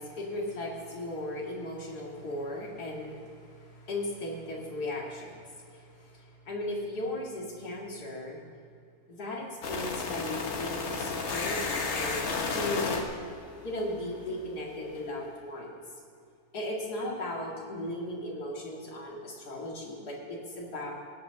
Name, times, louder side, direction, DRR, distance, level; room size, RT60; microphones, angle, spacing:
voice 1, 0.0-8.4 9.1-12.2 12.5-13.0 13.6-15.8 16.5-20.9, left 1 dB, 90° left, -2 dB, 2.6 m, -37 dB
sound 1, 9.6-14.5, left 4 dB, 50° left, 1.3 m, -33 dB
17.5 x 6.1 x 5.7 m, 2.4 s
omnidirectional pair, 1.7 m